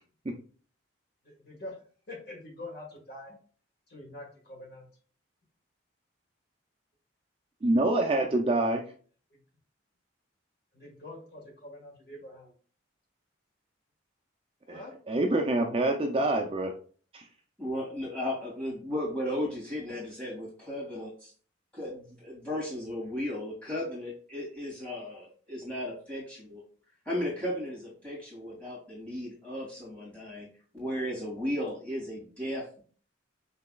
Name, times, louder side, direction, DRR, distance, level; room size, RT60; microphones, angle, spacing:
voice 1, 1.2-1.8 2.1-3.4 3.9-4.9 9.3-9.4 10.7-12.5 14.7-14.9, left 1 dB, 50° left, -1 dB, 1.6 m, -45 dB
voice 2, 7.6-8.9 14.7-14.8 15.1-16.8 17.1-17.3, right 2 dB, 25° right, 2 dB, 0.4 m, -26 dB
voice 3, 17.6-21.3 21.7-26.6 27.1-30.5 30.7-32.8, left 1 dB, 5° left, -7 dB, 2.0 m, -35 dB
5.7 x 3.3 x 2.3 m, 0.42 s
head